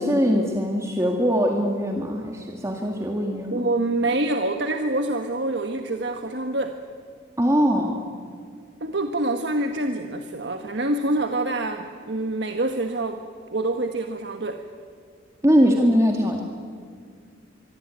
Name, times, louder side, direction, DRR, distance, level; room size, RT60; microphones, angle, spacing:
voice 1, 0.0-3.6 7.4-8.0 15.4-16.4, equal, 15° right, 2 dB, 2.0 m, -21 dB
voice 2, 3.5-6.8 8.8-13.2 13.5-14.6, right 2 dB, 65° right, 5 dB, 1.4 m, -26 dB
25.5 x 23.0 x 9.6 m, 2.1 s
head